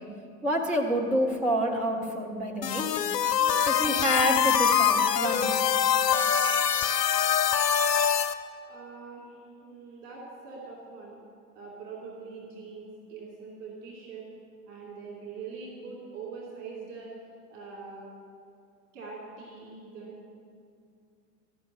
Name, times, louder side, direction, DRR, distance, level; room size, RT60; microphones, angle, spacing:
voice 1, 0.4-2.8 3.6-5.5, equal, 5° right, -1 dB, 0.3 m, -27 dB
sound 1, 2.6-8.3, left 8 dB, 80° left, 0.7 m, -24 dB
voice 2, 8.7-11.2 11.5-14.2 14.7-17.1 17.5-18.1 18.9-20.3, right 4 dB, 50° right, -4 dB, 3.1 m, -43 dB
13.5 x 6.3 x 8.5 m, 2.3 s
hypercardioid pair, 105°, 48 cm